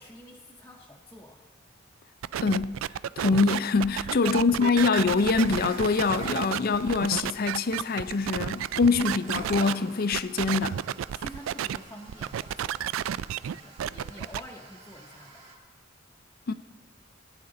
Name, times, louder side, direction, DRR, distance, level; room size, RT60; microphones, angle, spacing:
voice 1, 0.0-1.5 4.0-4.9 6.3-6.5 8.9-9.0 10.1-10.2 10.7-12.8 13.4-15.4, equal, 10° left, 0.8 m, -47 dB
sound 1, 2.2-9.7 10.1-11.8 12.1-14.4, right 10 dB, 75° right, 0.3 m, -31 dB
voice 2, 2.4-2.7 3.2-10.8 16.5-16.6, left 4 dB, 50° left, 0.5 m, -24 dB
sound 2, 5.1-15.5, right 2 dB, 35° right, 2.5 m, -47 dB
20.0 x 9.9 x 3.8 m
head